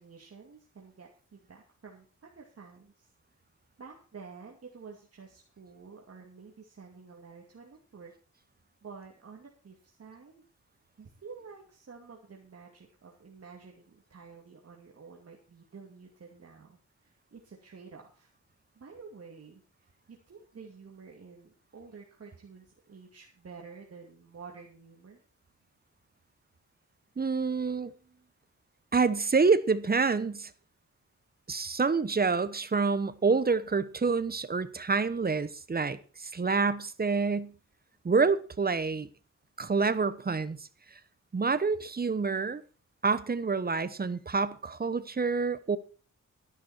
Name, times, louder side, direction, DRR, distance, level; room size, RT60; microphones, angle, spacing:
voice 1, 0.0-3.1 3.8-8.1 8.8-10.5 11.0-18.3 18.7-19.6 20.1-25.2 27.7-28.3, right 5 dB, 50° right, 2.5 m, -50 dB
voice 2, 27.2-27.9 28.9-30.5 31.5-37.5 38.0-39.1 39.6-40.7 41.3-42.6 43.0-45.8, right 4 dB, 30° right, 0.9 m, -27 dB
13.5 x 11.0 x 4.4 m
wide cardioid pair, 140°, 31 cm